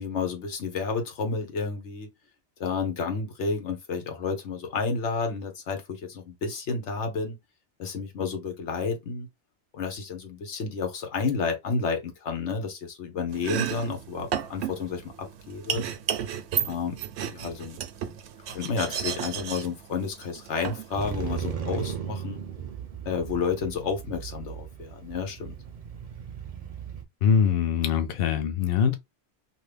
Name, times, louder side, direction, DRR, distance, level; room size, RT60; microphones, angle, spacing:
voice 1, 0.0-2.1 2.6-7.4 7.8-9.3 9.7-15.8 16.6-17.0 17.3-17.8 18.5-22.4 23.0-25.6, left 4 dB, 90° left, 1.2 m, -31 dB
Domestic sounds home sounds, 13.3-21.5, right 8 dB, 75° right, 0.8 m, -33 dB
Motorcycle, 20.9-27.0, right 8 dB, 45° right, 0.5 m, -37 dB
voice 2, 27.2-29.0, left 7 dB, 65° left, 0.7 m, -23 dB
2.8 x 2.6 x 3.3 m
omnidirectional pair, 1.1 m